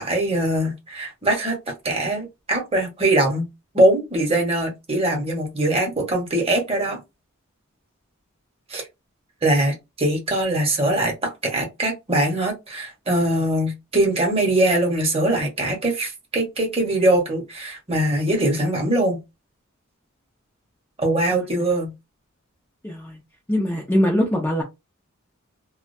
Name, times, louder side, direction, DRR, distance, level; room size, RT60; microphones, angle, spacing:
voice 1, 0.0-1.6 1.8-3.5 3.7-7.0 8.7-8.8 9.4-19.2 21.0-21.9, right 1 dB, 30° right, 1.0 m, -22 dB
voice 2, 22.8-23.2 23.5-24.6, equal, 10° left, 0.5 m, -22 dB
2.4 x 2.2 x 2.5 m
head